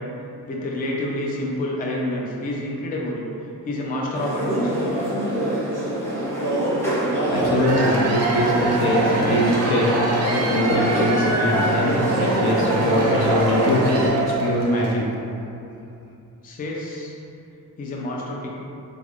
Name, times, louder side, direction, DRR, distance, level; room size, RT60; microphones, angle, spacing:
voice 1, 0.5-3.2 3.6-5.0 16.4-17.1 17.8-18.5, left 1 dB, 25° left, -2 dB, 0.3 m, -28 dB
sound 1, 4.1-14.1, right 1 dB, 5° left, 0.9 m, -24 dB
voice 2, 7.3-13.8 14.1-15.0, equal, 70° left, -3 dB, 0.7 m, -22 dB
Cheering / Applause / Crowd, 7.4-15.0, right 2 dB, 40° right, 0.5 m, -26 dB
3.9 x 3.4 x 2.4 m, 2.7 s
wide cardioid pair, 135°, 39 cm